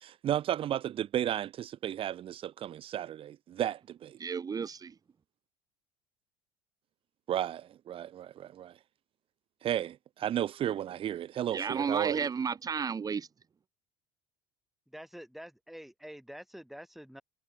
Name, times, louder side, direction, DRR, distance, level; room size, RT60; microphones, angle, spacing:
voice 1, 0.0-4.2 7.3-8.8 9.6-12.3, right 11 dB, 45° right, 1.8 m, -33 dB
voice 2, 4.2-4.9 11.5-13.3, right 6 dB, 30° right, 3.2 m, -32 dB
voice 3, 14.9-17.2, equal, ahead, 5.9 m, -47 dB
hypercardioid pair, 80°, 12 cm